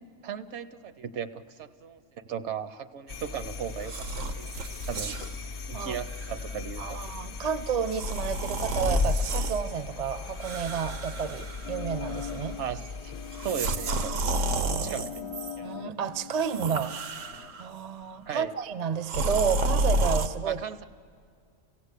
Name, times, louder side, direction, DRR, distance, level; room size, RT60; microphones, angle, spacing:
voice 1, 0.2-4.5 4.9-5.2 5.7-7.0 12.6-13.1 13.4-14.1 14.8-15.2 15.6-15.7 18.3-18.5 20.4-20.8, right 8 dB, 65° right, 12 dB, 1.0 m, -36 dB
sound 1, 3.1-13.6, left 4 dB, 45° left, 0.6 m, -36 dB
sound 2, 3.8-5.4 6.1-6.3 7.9-9.6 10.4-11.8 12.1-12.5 13.3-15.6 16.3-17.7 19.0-20.3, right 2 dB, 85° right, 1.3 m, -31 dB
voice 2, 6.8-12.6 14.3-17.0 17.6-20.6, right 7 dB, 45° right, 13 dB, 0.6 m, -31 dB
sound 3, 11.6-17.5, left 8 dB, 60° left, 1.0 m, -42 dB
28.0 x 16.5 x 8.2 m, 2.2 s
omnidirectional pair, 1.3 m